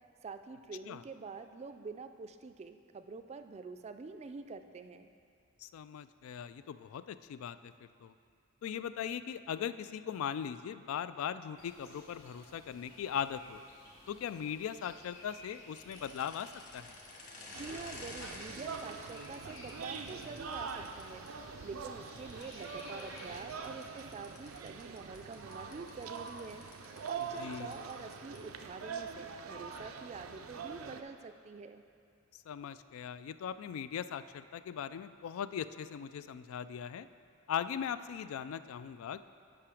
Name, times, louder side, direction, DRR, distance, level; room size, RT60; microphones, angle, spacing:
voice 1, 0.2-5.1 17.5-21.3 21.6-31.8, right 4 dB, 30° right, 9 dB, 0.3 m, -46 dB
voice 2, 5.6-7.7 8.0-8.1 8.6-13.6 14.1-17.0 27.4-27.8 32.5-37.1 37.5-39.2, left 8 dB, 85° left, 14 dB, 0.3 m, -39 dB
sound 1, 11.6-23.4, left 1 dB, 65° left, 2.1 m, -56 dB
sound 2, 15.8-21.3 22.1-28.6, left 2 dB, 40° left, 1.4 m, -52 dB
sound 3, 17.5-31.0, right 5 dB, 90° right, 0.5 m, -44 dB
8.6 x 5.9 x 4.9 m, 2.3 s
head